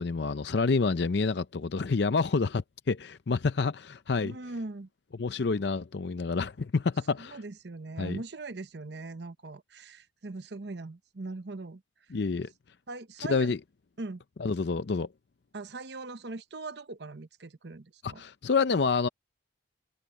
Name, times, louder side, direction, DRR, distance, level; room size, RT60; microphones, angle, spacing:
voice 1, 0.0-4.3 5.2-7.4 8.0-8.2 12.1-12.5 13.3-13.6 14.4-15.1 18.0-19.1, left 4 dB, 60° left, 0.5 m, -28 dB
voice 2, 4.2-4.9 7.2-11.8 12.9-13.6 14.0-14.2 15.5-18.2, right 3 dB, 60° right, 0.8 m, -40 dB
head